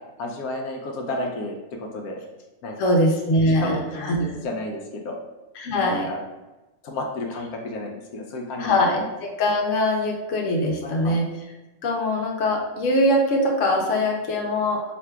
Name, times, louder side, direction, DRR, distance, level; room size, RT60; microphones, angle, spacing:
voice 1, 0.2-2.2 2.6-3.0 3.4-5.2 5.7-6.2 6.8-9.0 10.8-11.2, left 2 dB, 85° left, 1 dB, 1.1 m, -32 dB
voice 2, 2.8-4.2 5.6-6.1 8.6-11.3 11.8-14.9, left 1 dB, 60° left, 0 dB, 1.1 m, -22 dB
3.4 x 2.9 x 4.5 m, 1.1 s
omnidirectional pair, 1.5 m